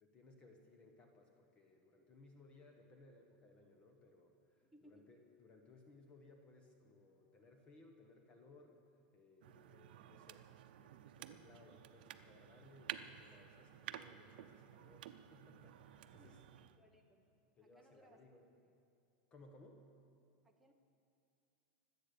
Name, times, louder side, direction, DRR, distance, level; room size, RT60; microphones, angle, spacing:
voice 1, 0.0-8.7 9.1-10.4 10.8-16.4 17.6-18.5 19.3-19.8, left 2 dB, 20° left, 3 dB, 1.1 m, -63 dB
voice 2, 4.6-5.2 16.1-17.2 17.6-18.2 20.4-20.7, equal, 5° right, 0 dB, 1.0 m, -67 dB
sound 1, 9.4-16.8, right 11 dB, 80° right, 0.7 m, -53 dB
24.0 x 8.4 x 6.8 m, 2.5 s
supercardioid pair, 165°, 5 cm